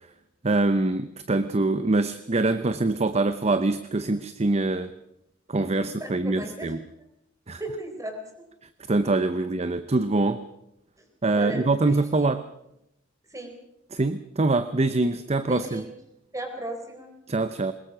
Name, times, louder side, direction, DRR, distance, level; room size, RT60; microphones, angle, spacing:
voice 1, 0.4-4.9 5.5-6.8 7.5-7.6 8.9-10.4 11.2-12.5 13.9-15.9 17.3-17.7, right 2 dB, 30° right, 12 dB, 0.7 m, -24 dB
voice 2, 5.6-6.7 7.6-8.2 11.3-12.3 13.3-13.6 15.5-15.9 16.3-17.1, right 1 dB, 15° right, 4 dB, 4.0 m, -36 dB
22.0 x 20.5 x 6.1 m, 0.83 s
head